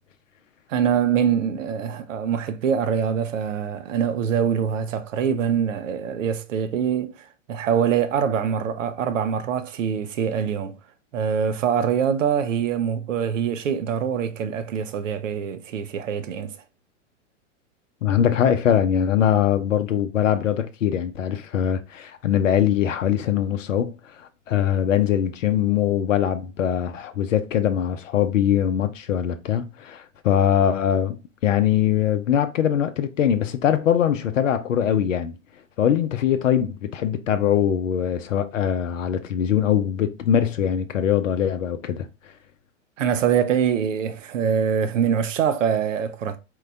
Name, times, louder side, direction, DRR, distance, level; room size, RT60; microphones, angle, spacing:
voice 1, 0.7-10.7 11.1-16.5 43.0-46.4, right 8 dB, 80° right, 0.6 m, -24 dB
voice 2, 18.0-35.4 35.8-42.1, left 9 dB, 80° left, 0.6 m, -22 dB
4.6 x 2.2 x 3.9 m
hypercardioid pair, 100°, 37 cm